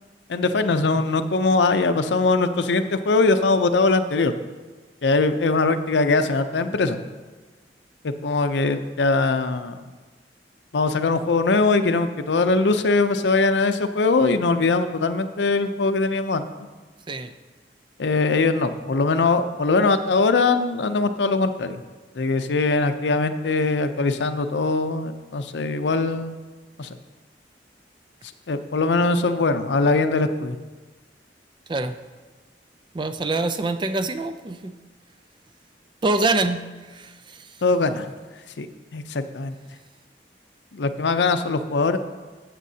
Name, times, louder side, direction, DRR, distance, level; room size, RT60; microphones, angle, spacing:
voice 1, 0.3-4.3 5.0-7.0 8.0-9.8 10.7-16.7 18.0-21.8 22.2-26.4 26.8-26.9 28.5-30.6 37.6-38.1 38.6-38.7 38.9-39.6 40.7-42.0, left 3 dB, 80° left, 9 dB, 0.6 m, -21 dB
voice 2, 32.9-34.7 36.0-36.7 37.0-37.1, right 2 dB, 25° right, 10 dB, 0.4 m, -24 dB
13.5 x 7.6 x 2.8 m, 1.3 s
head